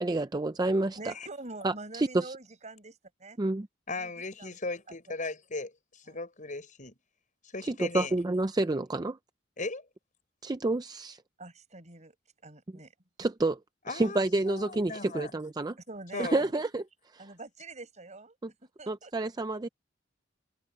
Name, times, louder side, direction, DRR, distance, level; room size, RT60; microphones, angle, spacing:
voice 1, 0.0-1.1 1.6-2.4 3.4-3.7 7.7-9.2 10.4-11.2 13.2-13.6 13.9-15.8 16.2-16.8 17.1-17.3 18.4-18.5 18.9-19.7, right 2 dB, 20° right, 0.5 m, -29 dB
voice 2, 1.0-3.4 4.0-4.1 4.4-4.6 4.9-5.1 6.1-6.2 11.4-12.2 12.4-12.9 15.9-16.6 17.2-18.4 18.8-19.1, right 2 dB, 40° right, 5.6 m, -45 dB
voice 3, 3.9-7.0 7.5-8.1 9.6-9.9 13.9-15.3 16.1-16.5, left 3 dB, 45° left, 7.0 m, -37 dB
head